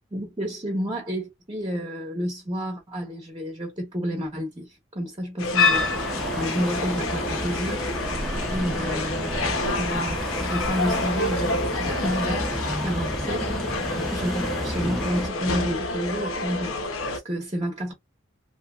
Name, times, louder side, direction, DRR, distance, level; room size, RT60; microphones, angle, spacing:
voice 1, 0.1-7.9 8.5-12.5 12.8-13.5 14.0-16.9 17.1-17.9, equal, 25° right, 0.9 m, -30 dB
sound 1, 5.4-17.2, left 3 dB, 85° left, 0.8 m, -28 dB
sound 2, 5.7-15.3, equal, ahead, 0.6 m, -32 dB
2.8 x 2.8 x 2.3 m
head